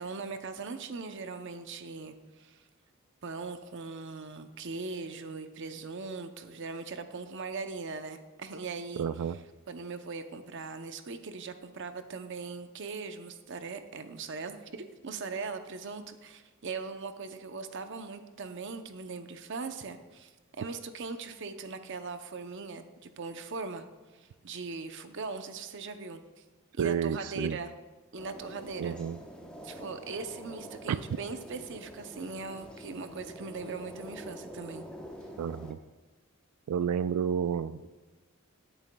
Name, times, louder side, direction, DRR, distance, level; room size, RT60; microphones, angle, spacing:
voice 1, 0.0-2.6 3.2-9.1 9.7-23.8 24.1-26.2 26.8-27.7 28.1-29.0 29.6-34.8, right 4 dB, 55° right, 8 dB, 0.6 m, -40 dB
voice 2, 9.0-9.4 26.8-27.6 28.8-29.2 30.9-31.0 35.4-35.8 36.7-37.9, right 7 dB, 85° right, 13 dB, 0.3 m, -30 dB
sound 1, 28.2-35.7, equal, 5° left, 0.9 m, -46 dB
18.0 x 9.0 x 2.3 m, 1.3 s
head